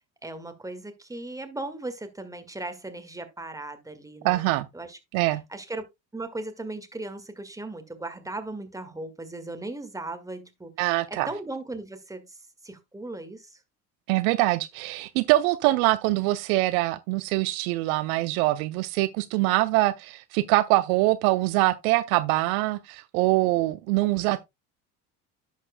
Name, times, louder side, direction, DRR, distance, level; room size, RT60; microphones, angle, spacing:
voice 1, 0.2-4.4 4.7-5.0 5.5-5.8 6.1-12.4 12.6-13.6, right 2 dB, 5° right, 1.8 m, -37 dB
voice 2, 4.2-4.7 5.1-5.4 10.8-11.3 14.1-24.4, right 19 dB, 65° right, 0.6 m, -24 dB
11.0 x 7.3 x 2.2 m
hypercardioid pair, 70°, 46 cm